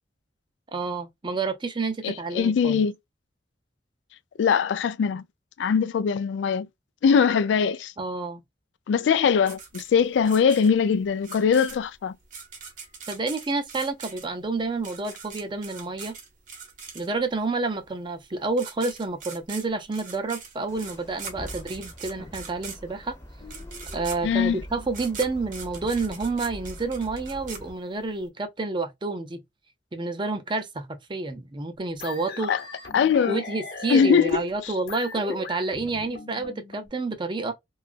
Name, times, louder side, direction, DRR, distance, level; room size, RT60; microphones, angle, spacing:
voice 1, 0.7-2.8 8.0-8.4 13.1-16.1 16.9-23.1 23.9-29.4 29.9-32.5 33.3-37.5, right 3 dB, 25° right, 0.5 m, -29 dB
voice 2, 2.0-2.9 4.4-5.2 5.6-6.7 7.0-7.9 8.9-12.1 24.2-24.6 32.5-32.6 32.9-33.4 33.9-34.7, left 6 dB, 85° left, 0.3 m, -22 dB
sound 1, 9.5-17.4 18.2-18.3 18.5-28.2, right 6 dB, 45° right, 0.8 m, -42 dB
sound 2, 20.7-27.7, left 1 dB, 15° left, 0.7 m, -43 dB
sound 3, 32.0-36.9, left 3 dB, 65° left, 0.9 m, -39 dB
2.9 x 2.3 x 2.4 m
head